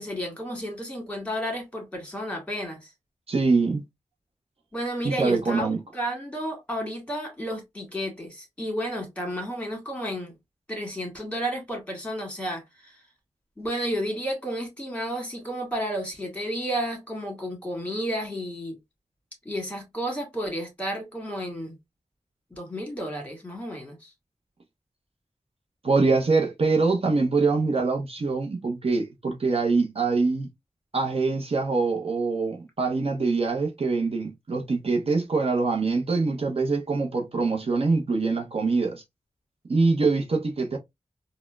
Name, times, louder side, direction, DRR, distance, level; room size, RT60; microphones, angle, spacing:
voice 1, 0.0-2.9 4.7-10.3 10.7-13.0 13.6-18.8 19.4-21.8 22.6-24.1, equal, 10° left, 1.7 m, -32 dB
voice 2, 3.3-3.8 5.0-5.8 25.8-30.5 30.9-39.0 39.7-40.8, right 3 dB, 55° right, 0.7 m, -24 dB
4.2 x 2.1 x 2.2 m
wide cardioid pair, 80°, 12 cm